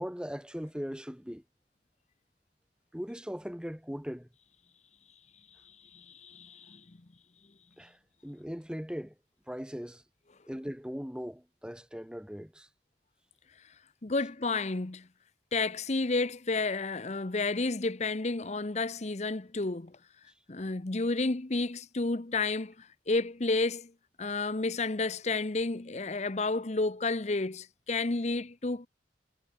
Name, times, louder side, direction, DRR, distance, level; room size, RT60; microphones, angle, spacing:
voice 1, 0.0-1.4 2.9-4.3 7.8-9.1 9.5-10.0 10.5-12.7, equal, 5° right, 1.4 m, -39 dB
voice 2, 5.9-7.0 14.0-15.1 15.5-20.0 20.5-23.9 24.2-28.9, left 3 dB, 40° left, 0.8 m, -31 dB
head